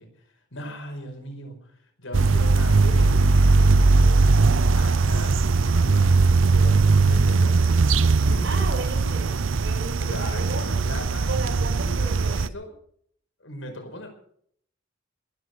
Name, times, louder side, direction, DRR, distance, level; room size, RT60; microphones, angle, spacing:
voice 1, 0.0-4.3 4.8-6.2 6.5-7.7 8.1-8.9 10.0-12.7 13.4-14.1, left 1 dB, 80° left, 4 dB, 5.2 m, -39 dB
sound 1, 2.1-12.5, right 3 dB, 80° right, 0.7 m, -19 dB
voice 2, 8.4-10.7 11.3-12.4, right 3 dB, 65° right, 5 dB, 5.0 m, -35 dB
22.0 x 10.5 x 6.2 m, 0.63 s
head